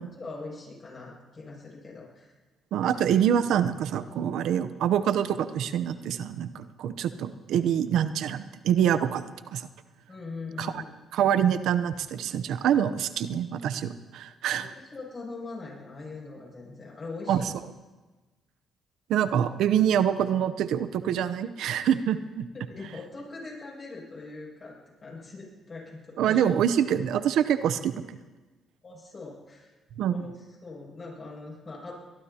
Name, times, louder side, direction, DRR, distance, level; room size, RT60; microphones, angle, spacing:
voice 1, 0.0-2.3 10.1-11.0 14.6-17.5 22.5-26.4 28.8-29.7 30.1-30.3 30.6-31.9, left 3 dB, 35° left, -3 dB, 6.9 m, -41 dB
voice 2, 2.7-9.2 9.5-9.7 10.6-10.8 11.1-14.7 17.3-17.5 19.1-22.5 26.2-27.9 30.0-30.2, right 9 dB, 80° right, 12 dB, 0.7 m, -25 dB
23.0 x 20.5 x 2.9 m, 1.2 s
cardioid pair, 90°, 0 cm